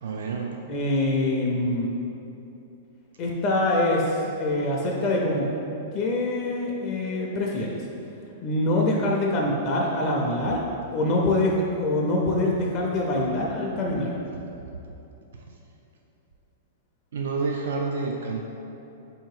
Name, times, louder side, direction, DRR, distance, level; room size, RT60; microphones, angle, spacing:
voice 1, 0.0-0.6 17.1-18.4, right 4 dB, 85° right, 1 dB, 0.4 m, -29 dB
voice 2, 0.7-1.9 3.2-5.5 5.9-7.8 8.4-10.6 10.9-14.1, left 1 dB, 25° left, -2 dB, 0.4 m, -24 dB
4.1 x 2.8 x 4.6 m, 2.9 s
supercardioid pair, 175°, 0 cm